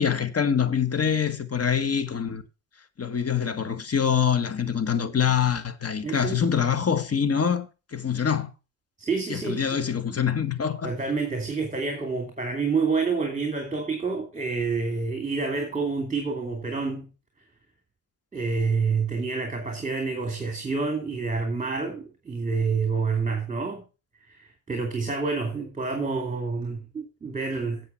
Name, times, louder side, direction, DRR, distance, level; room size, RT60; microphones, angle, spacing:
voice 1, 0.0-2.4 3.0-8.5 9.3-10.9, left 7 dB, 35° left, 1.7 m, -25 dB
voice 2, 6.0-6.4 9.0-9.8 10.8-17.1 18.3-23.8 24.3-27.8, right 4 dB, 15° right, 2.6 m, -28 dB
8.3 x 7.7 x 5.6 m
supercardioid pair, 70°, 44 cm